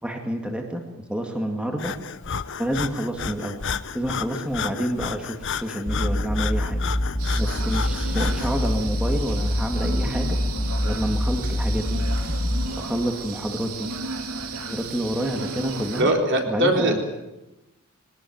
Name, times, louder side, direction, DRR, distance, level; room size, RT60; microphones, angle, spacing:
voice 1, 0.0-0.8 1.1-1.9 2.6-3.6 3.9-6.8 7.4-10.4 10.8-12.1 12.8-13.9 14.6-16.1 16.5-17.0, equal, 5° right, 2 dB, 2.1 m, -28 dB
Breathing, 1.8-8.6, left 6 dB, 55° left, 0.9 m, -32 dB
sound 1, 5.9-12.7, left 1 dB, 40° left, 1.9 m, -25 dB
sound 2, 7.2-16.0, right 3 dB, 75° right, 2.7 m, -34 dB
voice 2, 16.0-17.0, right 1 dB, 55° right, 2 dB, 4.2 m, -21 dB
22.5 x 19.0 x 9.4 m, 0.99 s
head